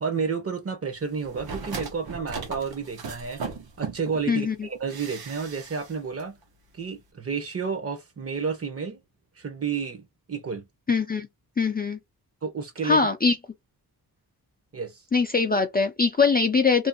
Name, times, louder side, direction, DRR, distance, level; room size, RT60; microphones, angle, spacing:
voice 1, 0.0-3.4 3.8-6.4 6.7-9.0 9.4-10.7 12.4-13.1 14.7-15.0, right 5 dB, 35° right, 0.8 m, -31 dB
sound 1, 1.2-4.2 4.9-5.9 6.2-6.3, right 5 dB, 65° right, 0.9 m, -37 dB
voice 2, 4.3-4.7 10.9-11.3 11.6-12.0 12.8-13.4 15.1-16.9, left 4 dB, 25° left, 0.4 m, -22 dB
2.6 x 2.5 x 2.5 m
wide cardioid pair, 115°, 40 cm